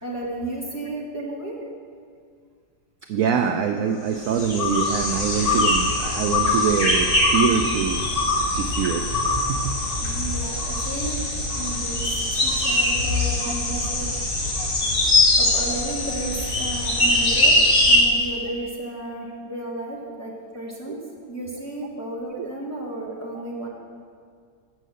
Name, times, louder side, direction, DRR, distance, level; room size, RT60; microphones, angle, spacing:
voice 1, 0.0-1.6 10.0-11.2 11.5-14.1 15.4-17.6 17.9-21.0 21.3-23.7, right 1 dB, 10° left, -5 dB, 1.4 m, -33 dB
voice 2, 3.1-8.0 8.5-9.0 9.4-9.6 13.4-13.6 13.8-13.9 14.6-14.7 22.3-22.5, right 7 dB, 75° right, 6 dB, 0.8 m, -24 dB
sound 1, 4.2-18.0, left 2 dB, 30° left, 1.4 m, -22 dB
7.7 x 6.4 x 7.7 m, 2.1 s
omnidirectional pair, 1.9 m